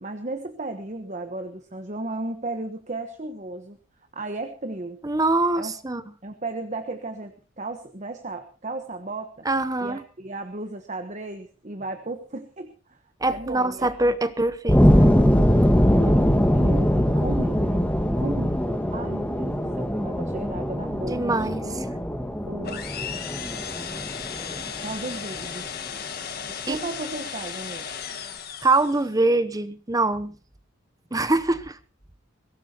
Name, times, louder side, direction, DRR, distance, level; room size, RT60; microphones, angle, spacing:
voice 1, 0.0-3.8 4.1-5.0 5.6-5.7 6.2-9.5 9.8-13.0 13.3-14.1 15.8-16.3 16.5-17.8 18.2-21.9 22.5-22.9 24.8-25.7 26.7-27.9, right 2 dB, 35° right, 7 dB, 1.2 m, -35 dB
voice 2, 5.0-6.0 9.4-10.0 13.2-15.1 21.1-21.8 26.7-26.8 28.6-30.4 31.1-31.8, right 2 dB, 20° right, 13 dB, 0.8 m, -24 dB
sound 1, 14.7-25.5, equal, 5° left, 1.5 m, -22 dB
sound 2, 22.6-29.1, left 7 dB, 50° left, 1.6 m, -35 dB
22.0 x 17.0 x 2.9 m, 0.36 s
head